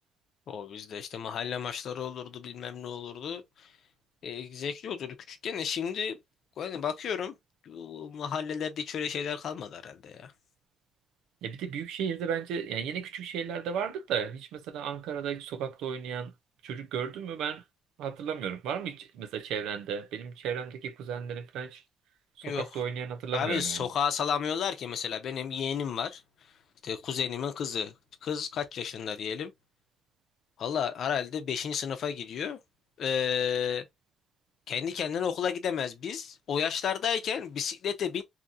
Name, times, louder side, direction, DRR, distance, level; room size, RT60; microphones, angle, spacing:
voice 1, 0.5-3.7 4.2-6.2 6.6-7.3 7.6-10.3 22.4-22.8 23.3-26.2 26.8-27.9 28.2-29.5 30.6-32.6 33.0-33.9 34.7-38.2, left 7 dB, 65° left, 0.7 m, -32 dB
voice 2, 11.4-16.3 16.6-17.6 18.0-21.8 22.5-23.9, right 7 dB, 90° right, 0.5 m, -34 dB
2.8 x 2.4 x 2.6 m
cardioid pair, 90°, 0 cm